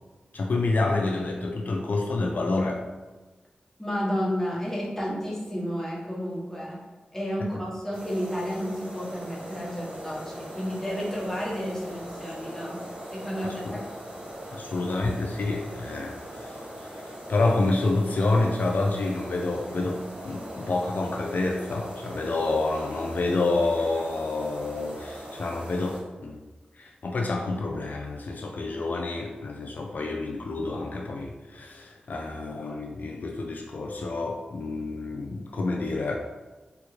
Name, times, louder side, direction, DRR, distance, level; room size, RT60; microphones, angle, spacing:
voice 1, 0.3-2.8 13.4-13.8 14.5-26.4 26.8-36.2, left 2 dB, 65° left, 1 dB, 0.3 m, -28 dB
voice 2, 3.8-6.8 7.1-12.8 13.1-13.8, equal, 10° left, -5 dB, 1.1 m, -31 dB
sound 1, 7.9-26.0, equal, 35° right, 1.0 m, -40 dB
3.4 x 2.3 x 3.1 m, 1.2 s
cardioid pair, 45°, 3 cm